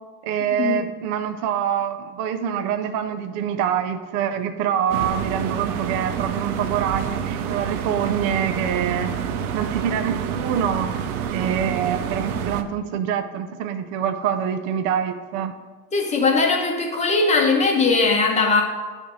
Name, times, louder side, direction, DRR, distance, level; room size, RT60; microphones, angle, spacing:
voice 1, 0.2-9.1 9.5-11.0 11.3-15.5, right 8 dB, 40° right, 9 dB, 0.6 m, -25 dB
sound 1, 4.9-12.6, right 8 dB, 85° right, 0.8 m, -28 dB
voice 2, 15.9-18.6, left 4 dB, 15° left, 2 dB, 0.9 m, -19 dB
9.9 x 3.5 x 6.3 m, 1.4 s
supercardioid pair, 140°, 43 cm